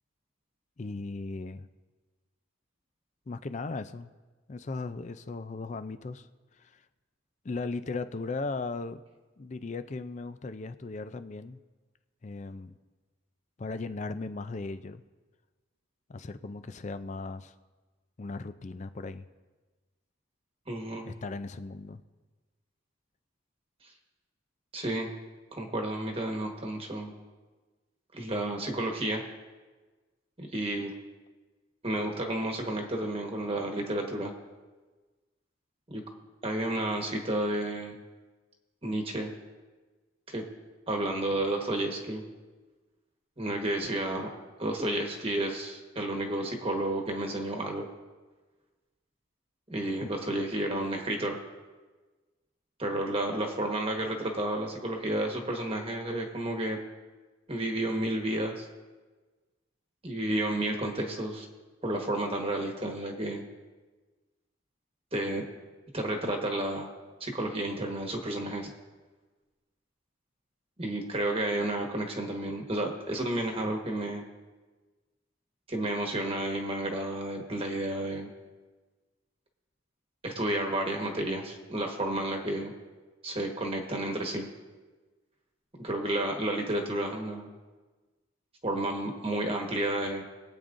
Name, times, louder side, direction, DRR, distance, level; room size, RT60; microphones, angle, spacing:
voice 1, 0.8-1.7 3.3-4.1 4.5-6.3 6.6-6.8 7.4-9.0 9.4-11.6 12.2-12.8 13.6-15.0 16.1-17.5 18.2-19.3 21.0-22.0 50.0-50.1, left 3 dB, 35° left, 11 dB, 0.4 m, -37 dB
voice 2, 20.7-21.1 24.7-25.1 25.5-27.1 28.1-29.2 30.4-30.9 31.8-34.3 35.9-36.0 36.4-38.0 38.8-39.3 40.3-40.4 40.9-42.2 43.4-44.3 44.6-47.8 49.7-51.4 52.8-56.8 57.5-58.7 60.0-61.4 61.8-63.4 65.1-65.4 65.9-66.9 67.2-68.7 70.8-74.2 75.7-78.3 80.2-82.7 83.2-84.5 85.8-87.5 88.6-90.2, right 1 dB, 30° right, 2 dB, 1.3 m, -31 dB
22.0 x 8.8 x 2.6 m, 1.3 s
head